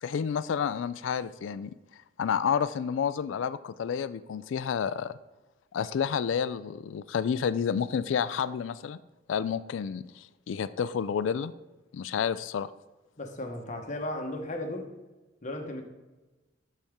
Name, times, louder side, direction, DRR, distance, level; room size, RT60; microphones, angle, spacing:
voice 1, 0.0-1.7 2.2-5.1 5.7-9.0 9.3-11.5 11.9-12.7, left 7 dB, 80° left, 15 dB, 0.3 m, -30 dB
voice 2, 13.2-14.9 15.4-15.8, left 1 dB, 40° left, 3 dB, 1.1 m, -35 dB
11.5 x 4.4 x 3.6 m, 1.1 s
head